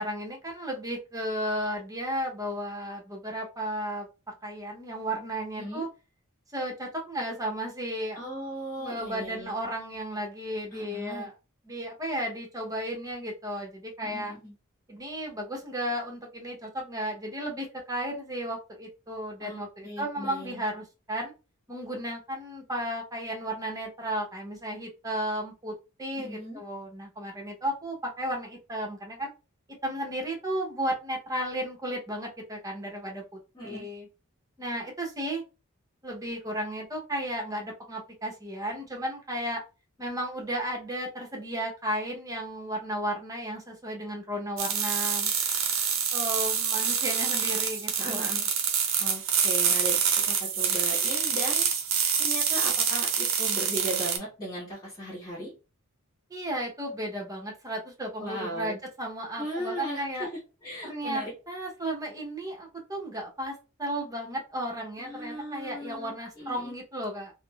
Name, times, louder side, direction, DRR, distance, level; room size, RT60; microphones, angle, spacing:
voice 1, 0.0-4.1 4.4-5.9 6.5-8.2 8.8-11.3 11.7-14.3 14.9-21.3 21.7-25.7 26.0-29.3 29.8-34.1 34.6-35.4 36.0-39.6 40.0-45.3 46.1-48.3 56.3-60.3 60.8-67.3, right 1 dB, 15° right, 0 dB, 0.8 m, -34 dB
voice 2, 8.1-9.5 10.7-11.3 14.0-14.5 19.4-20.6 26.2-26.6 33.5-33.9 48.0-48.4 49.0-51.7 52.2-55.5 58.2-58.8 59.4-60.3 60.6-61.3 65.0-66.7, equal, 20° left, -9 dB, 1.5 m, -37 dB
sound 1, 44.6-54.2, right 7 dB, 65° right, 0.6 m, -26 dB
3.5 x 2.0 x 2.3 m, 0.30 s
head